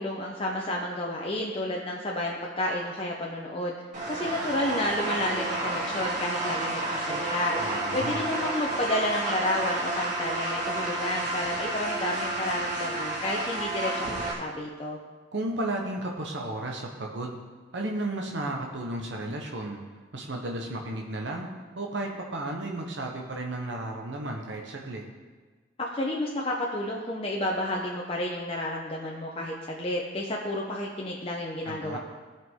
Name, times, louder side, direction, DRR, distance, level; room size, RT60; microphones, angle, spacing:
voice 1, 0.0-3.7 4.1-7.5 7.9-15.0 25.8-32.0, left 1 dB, 30° left, -2 dB, 0.8 m, -31 dB
sound 1, 3.9-14.3, right 2 dB, 40° right, 1.9 m, -31 dB
voice 2, 7.6-8.3 15.3-17.4 17.7-19.8 20.1-21.5 21.7-25.0 31.6-32.0, right 1 dB, 70° right, 0 dB, 1.1 m, -33 dB
17.0 x 5.8 x 3.7 m, 1.4 s
head